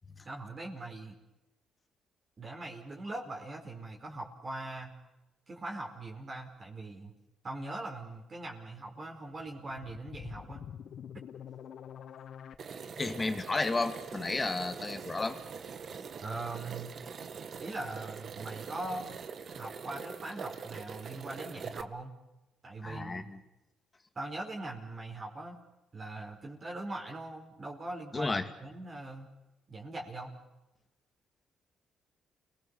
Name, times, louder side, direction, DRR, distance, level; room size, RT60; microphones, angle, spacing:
voice 1, 0.2-1.2 2.4-4.9 5.5-7.1 7.4-10.7 16.2-16.9 17.6-19.1 19.6-22.1 22.6-23.3 24.1-25.6 25.9-28.3 28.6-29.3 29.7-30.3, right 2 dB, 35° right, 0 dB, 4.7 m, -41 dB
sound 1, 9.3-12.6, left 8 dB, 65° left, 1.1 m, -46 dB
sound 2, 12.6-21.8, right 6 dB, 55° right, 1.6 m, -43 dB
voice 2, 13.0-15.4 22.8-23.4 28.1-28.5, left 3 dB, 25° left, 7 dB, 2.5 m, -32 dB
29.5 x 19.5 x 7.1 m, 1.0 s
cardioid pair, 90°, 0 cm